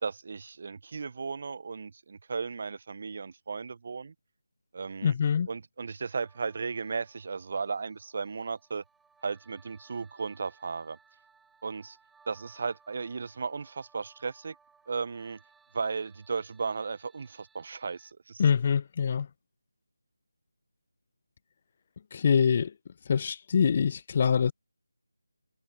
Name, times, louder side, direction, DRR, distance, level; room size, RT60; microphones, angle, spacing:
voice 1, 0.0-4.1 4.7-5.1 5.5-8.8 9.2-11.0 11.6-12.0 12.3-14.5 14.9-15.4 15.7-18.4, right 5 dB, 40° right, 0.8 m, -35 dB
voice 2, 5.0-5.5 18.4-19.3 22.1-22.7 23.1-24.5, left 6 dB, 30° left, 0.6 m, -24 dB
sound 1, 6.1-18.1, right 5 dB, 5° right, 2.6 m, -63 dB
figure-of-eight pair, 160°, 0 cm